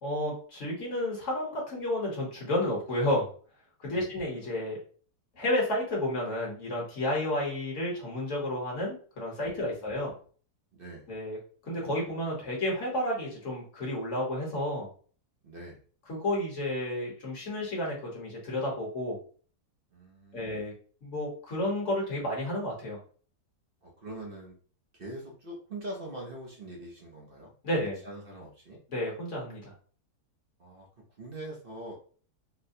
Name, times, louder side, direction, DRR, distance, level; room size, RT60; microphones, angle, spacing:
voice 1, 0.0-3.3 3.8-4.8 5.3-10.1 11.1-11.4 11.6-14.9 16.1-19.2 20.3-20.7 21.0-23.0 27.6-28.0 28.9-29.7, left 1 dB, 50° left, -3 dB, 1.4 m, -31 dB
voice 2, 9.5-10.2 10.7-11.0 15.4-15.8 19.9-20.6 23.8-24.6 24.9-27.5 28.0-28.8 30.6-30.9 31.2-31.9, right 1 dB, 55° right, -1 dB, 0.6 m, -43 dB
4.1 x 2.1 x 2.6 m, 0.43 s
omnidirectional pair, 1.7 m